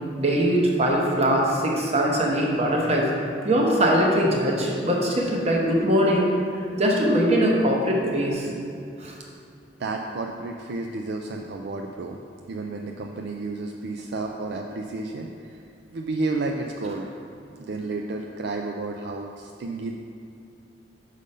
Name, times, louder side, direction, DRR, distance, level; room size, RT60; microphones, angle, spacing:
voice 1, 0.2-3.1 3.4-6.3 6.8-8.5 9.0-9.1, equal, 35° right, -1 dB, 1.0 m, -21 dB
voice 2, 9.8-12.2 12.5-15.5 15.9-17.1 17.6-20.0, right 3 dB, 65° right, 2 dB, 0.4 m, -31 dB
5.3 x 5.0 x 5.4 m, 2.5 s
head